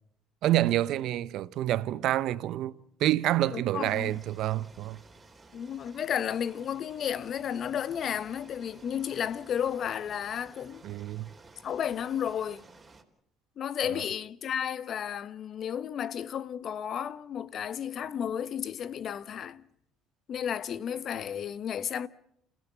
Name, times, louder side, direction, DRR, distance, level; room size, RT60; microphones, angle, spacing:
voice 1, 0.4-2.7 3.0-5.0 10.8-11.3, right 14 dB, 65° right, 0.9 m, -27 dB
voice 2, 3.5-4.2 5.5-10.8 11.6-12.6 13.6-19.6 20.3-22.1, left 8 dB, 50° left, 1.0 m, -33 dB
sound 1, 3.8-13.0, right 3 dB, 25° right, 4.0 m, -54 dB
29.0 x 16.0 x 8.2 m
supercardioid pair, 80°, 0 cm